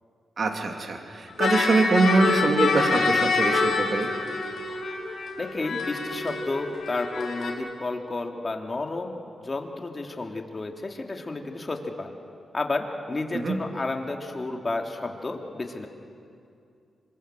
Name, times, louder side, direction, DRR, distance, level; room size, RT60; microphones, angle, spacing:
voice 1, 0.4-4.1 13.3-13.6, right 3 dB, 55° right, 3 dB, 3.2 m, -24 dB
sound 1, 1.3-7.5, left 4 dB, 70° left, 3.9 m, -26 dB
voice 2, 5.4-12.2 12.5-15.9, left 2 dB, 35° left, 3 dB, 3.0 m, -31 dB
26.0 x 22.5 x 7.8 m, 2.5 s
cardioid pair, 60°, 0 cm